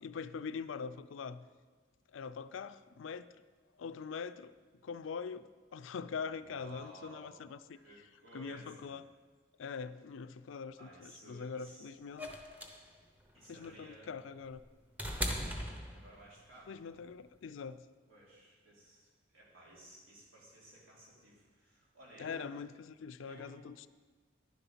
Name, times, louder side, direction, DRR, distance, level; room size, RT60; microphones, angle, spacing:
voice 1, 0.0-1.5 2.1-3.3 3.8-4.5 4.8-5.5 5.7-7.8 8.3-9.0 9.6-12.3 12.7-12.8 13.5-14.6 16.7-17.8 22.2-23.9, left 5 dB, 75° left, 14 dB, 0.4 m, -43 dB
voice 2, 6.3-7.3 7.7-8.9 10.8-11.9 13.3-14.1 15.4-16.7 18.1-22.5 23.2-23.8, right 1 dB, 85° right, -5 dB, 3.5 m, -56 dB
sound 1, 12.2-16.5 17.7-17.8, equal, 10° right, 0.8 m, -40 dB
10.5 x 7.0 x 5.7 m, 1.4 s
head